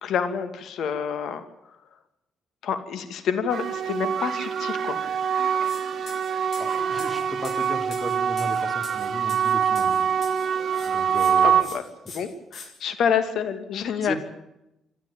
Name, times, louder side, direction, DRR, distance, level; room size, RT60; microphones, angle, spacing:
voice 1, 0.0-1.4 2.6-5.0 11.4-11.8 12.1-14.2, left 7 dB, 70° left, 10 dB, 2.5 m, -28 dB
sound 1, 3.5-11.6, right 7 dB, 55° right, 2.4 m, -24 dB
sound 2, 5.6-5.8 6.1-10.5 10.7-11.3 11.6-11.8 12.1-12.7, left 4 dB, 45° left, 6.9 m, -43 dB
voice 2, 6.6-10.0 10.8-11.6 14.0-14.2, left 1 dB, 15° left, 7 dB, 3.3 m, -35 dB
28.0 x 12.0 x 8.9 m, 0.87 s
cardioid pair, 90°, 0 cm